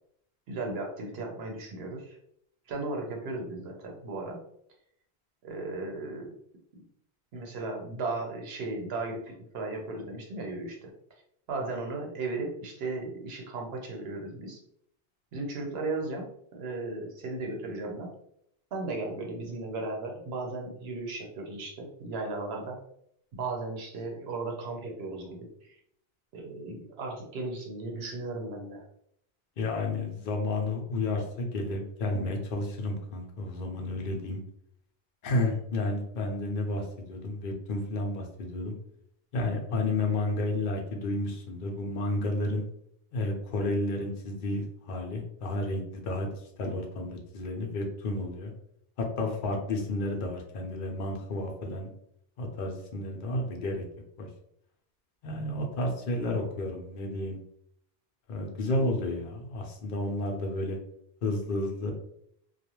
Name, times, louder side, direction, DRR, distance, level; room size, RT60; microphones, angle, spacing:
voice 1, 0.5-2.2 2.7-4.4 5.4-6.3 7.3-10.9 11.5-14.6 15.3-18.1 18.7-22.8 23.3-25.8 26.3-28.9, right 2 dB, 75° right, 0 dB, 0.9 m, -36 dB
voice 2, 29.6-34.4 35.2-38.7 39.3-42.6 43.1-46.3 46.6-48.5 49.0-51.9 52.4-53.8 54.2-54.3 55.2-57.4 58.3-60.8 61.2-61.9, left 2 dB, 60° left, 2 dB, 0.7 m, -31 dB
2.4 x 2.3 x 2.9 m, 0.71 s
omnidirectional pair, 1.1 m